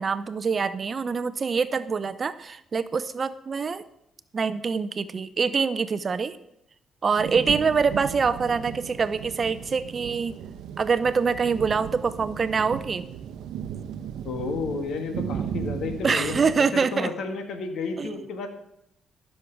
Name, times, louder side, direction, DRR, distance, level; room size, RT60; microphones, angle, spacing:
voice 1, 0.0-3.8 4.3-6.4 7.0-10.4 10.8-13.0 16.0-17.1 18.0-18.1, right 5 dB, 40° right, 14 dB, 0.6 m, -25 dB
sound 1, 7.2-16.6, right 8 dB, 80° right, 0.7 m, -36 dB
voice 2, 14.2-18.5, left 4 dB, 75° left, 6 dB, 1.9 m, -31 dB
13.5 x 6.5 x 6.0 m, 0.77 s
cardioid pair, 90°, 0 cm